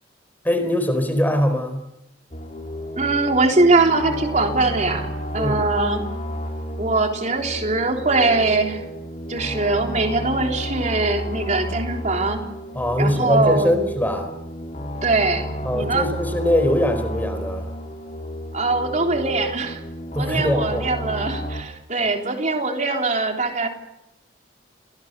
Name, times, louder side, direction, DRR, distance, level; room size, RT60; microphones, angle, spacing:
voice 1, 0.4-1.8 5.4-5.7 12.7-14.3 15.6-17.7 20.1-20.8, left 1 dB, 10° left, 8 dB, 4.3 m, -22 dB
sound 1, 2.3-21.6, equal, 40° left, 4.5 m, -32 dB
voice 2, 3.0-6.1 6.8-8.9 9.3-12.4 13.0-13.7 15.0-16.1 18.5-19.8 20.2-23.7, right 3 dB, 40° right, 3 dB, 3.5 m, -22 dB
29.0 x 23.5 x 6.8 m, 0.88 s
head